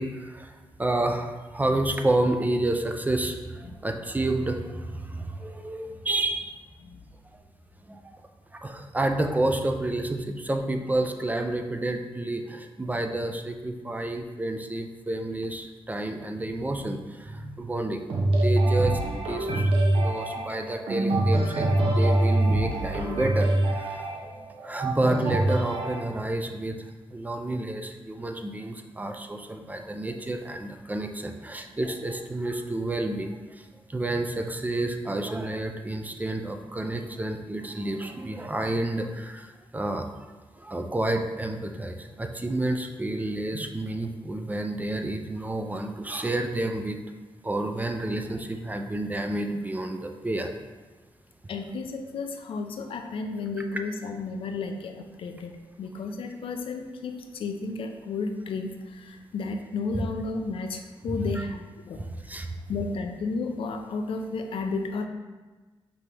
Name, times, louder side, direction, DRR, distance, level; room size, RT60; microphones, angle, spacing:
voice 1, 0.0-6.6 7.9-8.2 8.6-18.0 18.4-24.0 24.6-26.8 27.1-40.1 40.6-47.0 47.4-50.5 59.9-60.1 61.1-61.4 62.0-62.6, right 2 dB, 15° right, 5 dB, 0.4 m, -30 dB
sound 1, 18.1-26.0, right 1 dB, 80° right, 0.7 m, -24 dB
voice 2, 51.5-62.1 62.7-65.1, left 4 dB, 75° left, 5 dB, 0.4 m, -33 dB
5.3 x 2.8 x 3.2 m, 1.3 s
cardioid pair, 80°, 9 cm